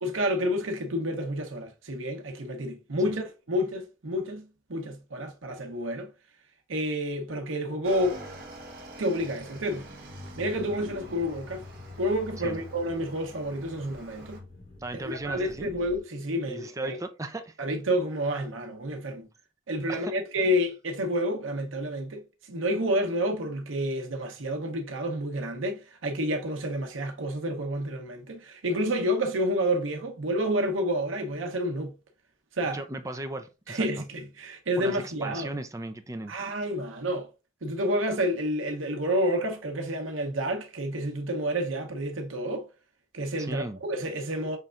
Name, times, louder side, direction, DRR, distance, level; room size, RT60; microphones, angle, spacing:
voice 1, 0.0-6.1 6.7-8.2 9.0-9.9 10.4-11.6 12.0-14.4 15.0-17.0 17.6-19.3 19.7-31.9 32.6-32.8 33.7-35.5 36.3-37.3 37.6-42.7 43.1-44.6, equal, 85° right, 0.9 m, -29 dB
Motorcycle / Engine, 7.8-14.4, right 1 dB, 50° right, 1.3 m, -45 dB
sound 1, 9.2-16.0, left 2 dB, 65° left, 2.7 m, -47 dB
voice 2, 14.8-15.7 16.5-17.6 19.9-20.1 32.7-33.9 34.8-36.4 43.4-43.8, right 2 dB, 15° right, 0.5 m, -36 dB
5.6 x 3.3 x 2.4 m
head